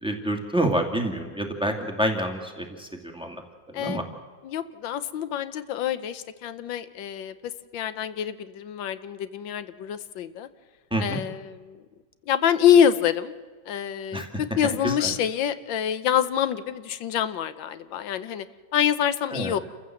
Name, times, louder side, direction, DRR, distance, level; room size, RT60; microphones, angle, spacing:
voice 1, 0.0-2.9 3.1-3.4 3.8-4.0 10.9-11.2 14.1-14.3 14.8-15.1 19.3-19.6, right 1 dB, 5° right, 3 dB, 2.1 m, -27 dB
voice 2, 3.7-4.0 4.4-10.5 11.0-11.8 12.3-13.3 13.7-18.5 18.7-19.6, left 9 dB, 90° left, 13 dB, 1.6 m, -26 dB
29.0 x 14.5 x 7.7 m, 1.4 s
omnidirectional pair, 2.0 m